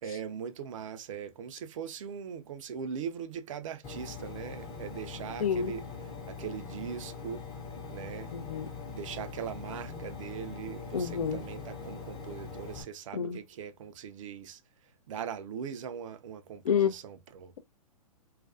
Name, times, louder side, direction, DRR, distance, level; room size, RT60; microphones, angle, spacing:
voice 1, 0.0-5.8 6.3-7.4 7.9-8.3 8.9-14.6 15.1-17.6, right 7 dB, 55° right, 0.5 m, -40 dB
Engine, 3.8-12.8, left 5 dB, 25° left, 0.7 m, -42 dB
voice 2, 5.4-5.7 8.3-8.7 10.9-11.4 13.1-13.4 16.6-16.9, left 7 dB, 70° left, 0.5 m, -28 dB
2.4 x 2.2 x 2.4 m
hypercardioid pair, 125°, 19 cm